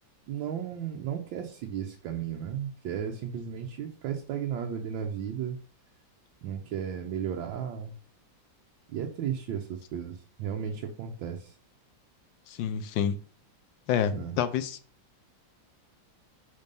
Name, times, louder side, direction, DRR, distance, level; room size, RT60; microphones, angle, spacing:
voice 1, 0.3-5.6 6.4-7.9 8.9-11.5 14.1-14.3, right 8 dB, 90° right, 3 dB, 1.5 m, -34 dB
voice 2, 12.5-13.2 13.9-14.8, left 8 dB, 80° left, 10 dB, 1.3 m, -28 dB
5.3 x 4.6 x 5.2 m, 0.42 s
omnidirectional pair, 2.0 m